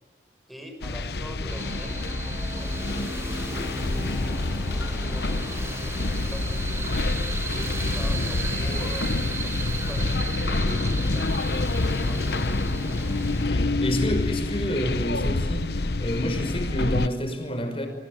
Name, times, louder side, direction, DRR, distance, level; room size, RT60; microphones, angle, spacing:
voice 1, 0.5-2.1 2.6-5.7 6.1-7.1 7.5-9.1 9.4-12.3, equal, ahead, 5 dB, 6.0 m, -42 dB
sound 1, 0.8-17.1, left 2 dB, 65° left, 0.9 m, -27 dB
sound 2, 1.5-13.4, right 3 dB, 15° right, 1.6 m, -36 dB
voice 2, 13.3-15.7 16.0-17.9, equal, 35° left, 7 dB, 5.6 m, -29 dB
27.5 x 25.5 x 8.1 m, 1.4 s
head